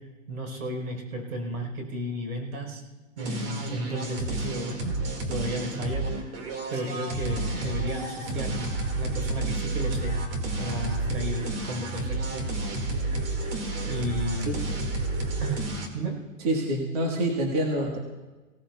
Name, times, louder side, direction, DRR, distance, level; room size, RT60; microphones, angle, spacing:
voice 1, 0.3-2.8 3.2-5.0 5.3-6.3 6.7-10.3 10.6-12.4 13.1-13.3 13.9-14.5 15.4-15.6 15.9-16.2, right 1 dB, 80° right, 2 dB, 4.4 m, -33 dB
sound 1, 3.2-15.9, right 2 dB, 40° right, 2.1 m, -30 dB
voice 2, 16.4-18.0, right 1 dB, 25° right, 1 dB, 1.6 m, -27 dB
23.0 x 17.0 x 2.4 m, 1.2 s
hypercardioid pair, 165°, 42 cm